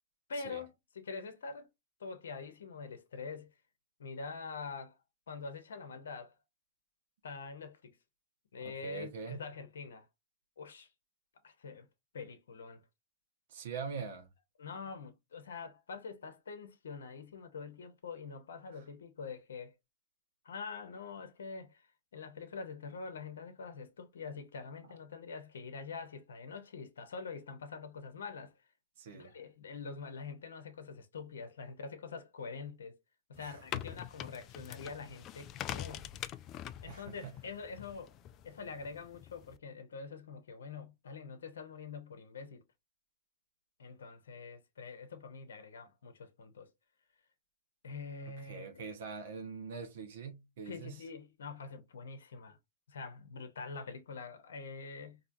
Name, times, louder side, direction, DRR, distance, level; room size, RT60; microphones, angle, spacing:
voice 1, 0.3-1.7 2.0-3.5 4.0-5.0 5.3-6.4 7.2-8.0 8.5-10.1 10.6-10.9 11.4-11.9 12.1-12.8 14.6-19.7 20.4-21.9 22.1-28.5 29.1-33.0 33.3-36.1 36.8-38.1 38.4-42.6 43.8-46.7 47.8-48.8 50.7-52.6 52.9-55.2, left 4 dB, 75° left, 0.7 m, -45 dB
voice 2, 8.6-9.4 13.5-14.3 18.7-18.8 29.0-29.3 33.4-33.8 36.9-37.3 48.2-51.0, right 5 dB, 65° right, 1.0 m, -44 dB
sound 1, 33.3-39.6, left 11 dB, 35° left, 0.3 m, -44 dB
4.4 x 2.7 x 2.6 m
hypercardioid pair, 105°, 0 cm